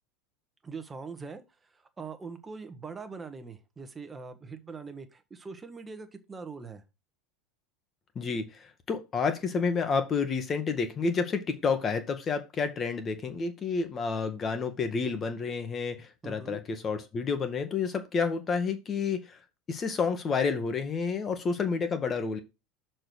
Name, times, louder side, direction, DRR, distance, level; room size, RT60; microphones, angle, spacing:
voice 1, 0.6-6.8 16.2-16.6, right 4 dB, 20° right, 1.2 m, -42 dB
voice 2, 8.1-19.4 19.7-22.4, left 5 dB, 30° left, 1.2 m, -30 dB
6.5 x 4.4 x 6.3 m
figure-of-eight pair, 80°, 0 cm